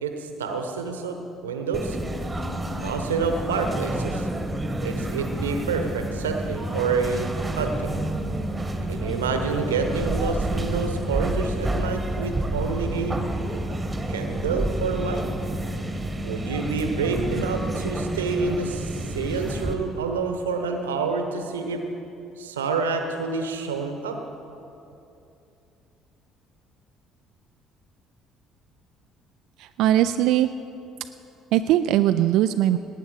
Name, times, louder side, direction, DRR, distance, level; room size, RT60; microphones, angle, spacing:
voice 1, 0.0-2.0 2.7-4.3 4.8-7.3 7.6-8.0 8.9-13.2 14.1-15.2 16.2-21.8 22.4-24.2, right 4 dB, 80° right, 5 dB, 1.0 m, -28 dB
sound 1, 1.7-19.7, right 1 dB, 15° right, 1.4 m, -29 dB
voice 2, 29.6-30.5 31.5-32.8, right 12 dB, 60° right, 9 dB, 0.3 m, -20 dB
18.5 x 9.3 x 5.1 m, 2.8 s
figure-of-eight pair, 55°, 0 cm